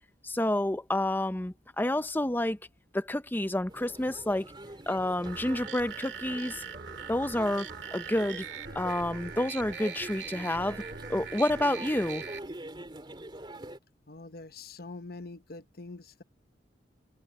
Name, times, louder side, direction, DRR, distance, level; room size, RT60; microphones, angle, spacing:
voice 1, 0.2-2.6 2.9-4.5 4.9-6.6 7.1-8.5 8.7-10.8 11.1-12.2, left 1 dB, 10° left, 0.6 m, -29 dB
sound 1, 3.7-13.8, right 1 dB, 25° right, 3.5 m, -45 dB
sound 2, 5.3-12.4, right 6 dB, 65° right, 2.0 m, -41 dB
voice 2, 14.1-16.2, left 3 dB, 55° left, 1.0 m, -44 dB
open air
head